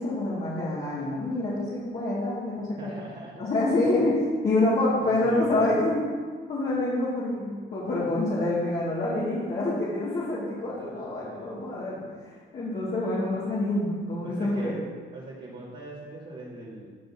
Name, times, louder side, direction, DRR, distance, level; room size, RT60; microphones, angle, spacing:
voice 1, 0.0-2.9 3.4-6.0 6.5-14.8, left 2 dB, 50° left, -8 dB, 2.3 m, -27 dB
voice 2, 2.8-3.5 3.8-3.9 5.0-5.7 14.2-14.8 15.1-16.9, right 2 dB, 45° right, -7 dB, 2.0 m, -41 dB
11.5 x 6.4 x 2.9 m, 1.6 s
cardioid pair, 90°, 20 cm